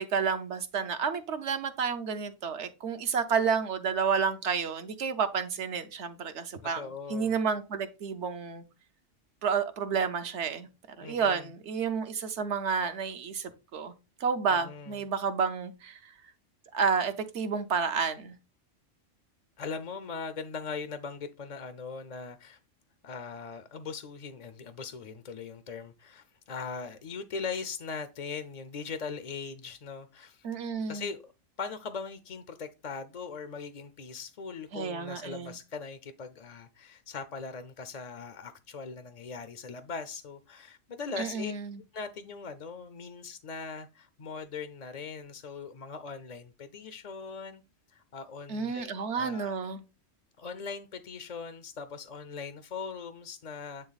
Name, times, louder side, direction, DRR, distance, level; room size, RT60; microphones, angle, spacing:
voice 1, 0.0-8.6 9.4-13.9 14.2-16.1 16.7-18.3 30.4-31.1 34.7-35.5 41.2-41.8 48.5-49.8, right 6 dB, 65° right, 1.1 m, -30 dB
voice 2, 6.8-7.4 11.0-11.5 14.5-15.0 19.6-22.6 23.0-30.6 30.9-31.3 31.6-41.5 41.9-47.6 47.9-49.6 50.4-53.9, left 5 dB, 50° left, 0.5 m, -40 dB
9.0 x 3.4 x 3.9 m
omnidirectional pair, 1.3 m